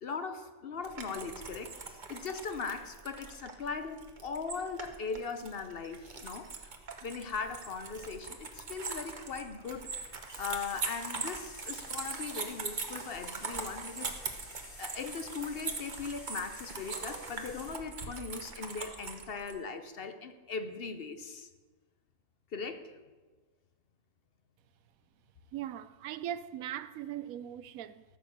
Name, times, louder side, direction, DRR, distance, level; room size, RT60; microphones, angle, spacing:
voice 1, 0.0-6.8 7.0-10.1 10.4-14.2 14.8-21.5 22.5-23.0, left 5 dB, 50° left, 0.9 m, -39 dB
sound 1, 0.8-19.5, right 4 dB, 35° right, 1.1 m, -42 dB
sound 2, 10.3-17.7, left 1 dB, 75° left, 4.4 m, -51 dB
voice 2, 25.5-28.0, right 11 dB, 80° right, 1.0 m, -39 dB
14.0 x 6.7 x 6.6 m
omnidirectional pair, 1.5 m